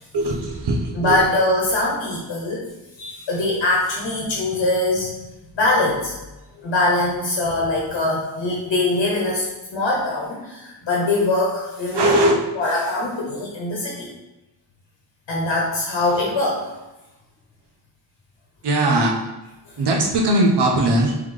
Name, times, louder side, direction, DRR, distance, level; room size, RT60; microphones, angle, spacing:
voice 1, 0.1-1.3 11.9-12.4 16.1-16.2 18.6-19.2 19.8-21.2, right 1 dB, 65° right, 1 dB, 0.8 m, -19 dB
voice 2, 1.0-2.6 3.0-5.1 5.5-6.1 6.6-9.4 9.7-12.1 12.6-14.1 15.3-16.6, left 2 dB, 90° left, -3 dB, 1.0 m, -22 dB
3.7 x 3.3 x 3.2 m, 1.0 s
wide cardioid pair, 75°, 43 cm